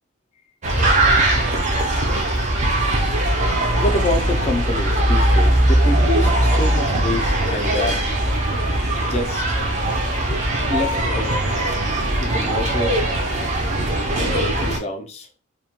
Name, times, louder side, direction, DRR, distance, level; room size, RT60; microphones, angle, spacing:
sound 1, 0.6-14.8, right 1 dB, 35° right, 0.4 m, -20 dB
voice 1, 3.8-8.0 9.0-9.4 10.7-11.5 12.2-13.0 14.1-15.3, left 1 dB, 30° left, 0.3 m, -27 dB
2.2 x 2.1 x 2.8 m
head